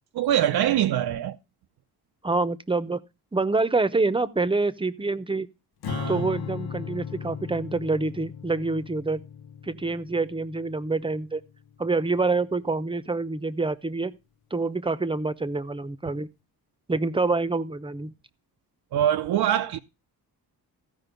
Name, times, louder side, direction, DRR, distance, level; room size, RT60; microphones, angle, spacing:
voice 1, 0.1-1.4 5.9-6.2 18.9-19.8, right 11 dB, 90° right, 0.8 m, -24 dB
voice 2, 2.2-3.0 3.3-5.5 6.1-9.2 9.6-11.4 11.8-14.1 14.5-16.3 16.9-18.1, right 3 dB, 15° right, 0.8 m, -26 dB
Strum, 5.8-12.2, left 7 dB, 85° left, 1.2 m, -37 dB
15.5 x 5.4 x 5.2 m
wide cardioid pair, 140°, 37 cm